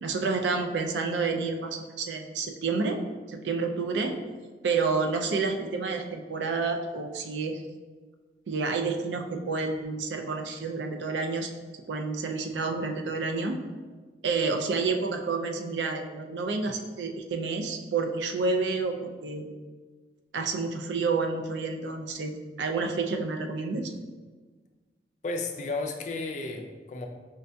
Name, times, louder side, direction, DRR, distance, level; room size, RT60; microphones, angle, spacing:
voice 1, 0.0-3.0 3.3-4.2 4.6-7.6 8.5-11.5 11.9-13.6 14.2-19.4 20.3-23.9, right 4 dB, 80° right, 5 dB, 0.4 m, -29 dB
voice 2, 25.2-27.1, left 3 dB, 40° left, 4 dB, 0.3 m, -33 dB
5.0 x 2.6 x 2.2 m, 1.4 s
head